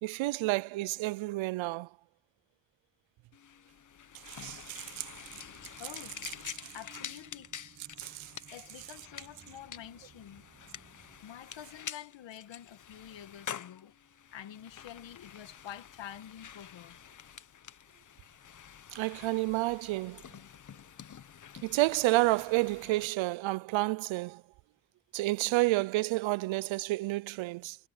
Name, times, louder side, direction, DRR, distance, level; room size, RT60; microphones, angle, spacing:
voice 1, 0.0-1.9 4.3-5.1 8.0-8.3 18.9-20.2 21.6-24.4 25.1-27.8, right 20 dB, 90° right, 0.6 m, -30 dB
sound 1, 3.3-23.1, left 8 dB, 40° left, 1.1 m, -48 dB
sound 2, 5.1-11.2, right 5 dB, 35° right, 6.6 m, -60 dB
voice 2, 5.8-6.2 6.7-7.5 8.5-10.4 11.2-13.9 14.3-17.0, left 10 dB, 70° left, 2.1 m, -48 dB
cardioid pair, 100°, 45 cm